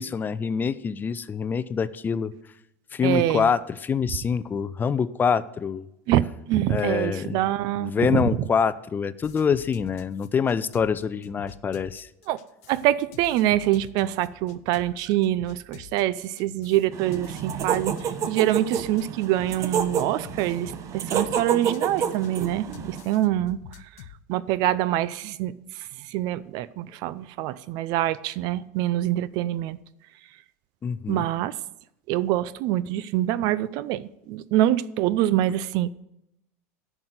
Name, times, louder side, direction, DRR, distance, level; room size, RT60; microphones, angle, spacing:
voice 1, 0.0-2.3 2.9-5.9 6.7-7.4 7.8-12.1 30.8-31.2, left 6 dB, 25° left, 16 dB, 0.5 m, -25 dB
voice 2, 3.0-3.5 6.1-8.3 12.3-12.4 12.7-17.9 18.3-23.6 24.3-25.6 26.1-29.8 31.1-31.5 32.1-35.9, right 14 dB, 60° right, 18 dB, 0.5 m, -25 dB
sound 1, 9.2-24.2, left 10 dB, 70° left, 0.8 m, -46 dB
sound 2, 16.9-23.0, right 7 dB, 40° right, 1.0 m, -29 dB
10.5 x 6.1 x 7.9 m, 0.84 s
hypercardioid pair, 100°, 8 cm